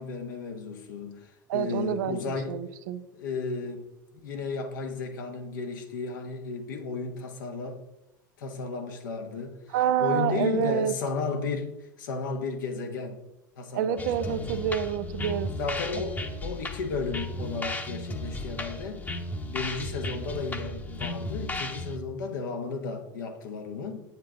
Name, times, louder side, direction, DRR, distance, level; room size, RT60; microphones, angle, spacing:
voice 1, 0.0-2.6 3.2-3.8 4.2-7.8 8.4-9.6 10.0-13.2 13.6-14.6 15.5-19.2 19.4-24.0, left 4 dB, 75° left, 1.3 m, -34 dB
voice 2, 1.5-2.2 2.5-3.0 9.7-10.9 13.7-15.5 15.9-16.0, right 9 dB, 65° right, 0.6 m, -27 dB
sound 1, 14.0-22.0, left 1 dB, 15° left, 1.0 m, -35 dB
8.5 x 7.4 x 3.7 m
hypercardioid pair, 80°, 10 cm